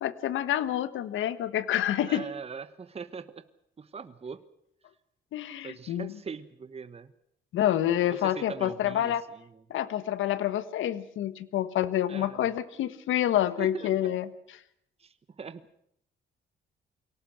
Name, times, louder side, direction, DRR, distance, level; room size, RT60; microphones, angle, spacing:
voice 1, 0.0-2.2 5.3-6.1 7.5-9.2 9.7-14.6, left 12 dB, 80° left, 14 dB, 1.4 m, -28 dB
voice 2, 2.0-3.4 3.8-4.4 5.6-7.1 8.1-9.5 12.1-12.4 13.6-13.9 15.0-15.6, right 5 dB, 30° right, 12 dB, 1.2 m, -41 dB
23.5 x 18.0 x 7.9 m, 0.71 s
cardioid pair, 90°, 20 cm